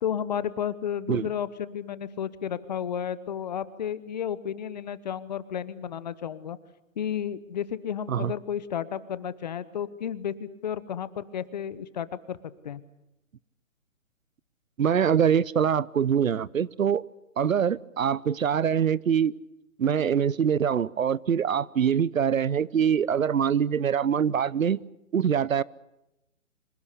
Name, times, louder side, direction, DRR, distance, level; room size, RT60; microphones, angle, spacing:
voice 1, 0.0-6.6 7.0-12.4 12.6-12.8, left 9 dB, 35° left, 17 dB, 0.9 m, -32 dB
voice 2, 14.8-17.0 17.4-19.3 19.8-24.8 25.1-25.6, right 8 dB, 80° right, 22 dB, 0.8 m, -24 dB
26.0 x 17.5 x 8.2 m, 0.91 s
hypercardioid pair, 150°, 39 cm